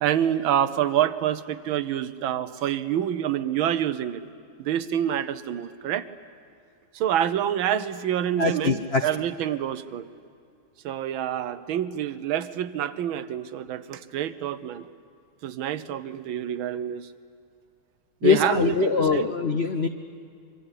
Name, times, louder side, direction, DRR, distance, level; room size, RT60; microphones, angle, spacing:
voice 1, 0.0-4.2 4.6-6.1 6.9-10.0 10.8-14.9 15.4-17.1 18.2-19.3, right 10 dB, 80° right, 12 dB, 1.7 m, -27 dB
voice 2, 8.4-9.1 18.2-19.9, left 5 dB, 65° left, 8 dB, 0.6 m, -23 dB
24.5 x 24.0 x 10.0 m, 2.3 s
omnidirectional pair, 2.2 m